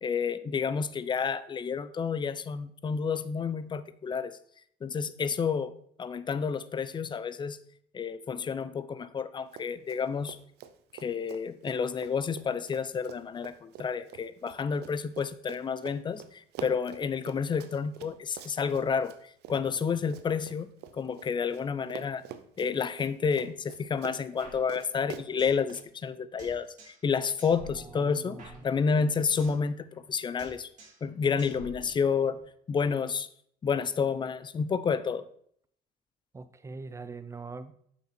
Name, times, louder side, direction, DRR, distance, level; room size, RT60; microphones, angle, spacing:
voice 1, 0.0-4.4 4.8-5.7 6.0-7.6 7.9-10.4 11.0-19.1 19.5-22.2 22.6-30.7 31.0-32.4 32.7-33.3 33.6-35.3, left 6 dB, 25° left, 15 dB, 0.5 m, -30 dB
Run, 9.5-10.0 10.3-21.6 21.9-25.9, right 10 dB, 80° right, 0.7 m, -46 dB
sound 1, 24.4-25.7 25.9-26.0 26.4-27.1 27.4-29.7 29.9-30.1 30.4-31.1 31.4-32.4, equal, 45° right, 2.5 m, -50 dB
voice 2, 27.7-29.1 36.3-37.7, right 4 dB, 15° right, 12 dB, 0.6 m, -43 dB
7.7 x 5.9 x 4.3 m, 0.65 s
cardioid pair, 110°, 17 cm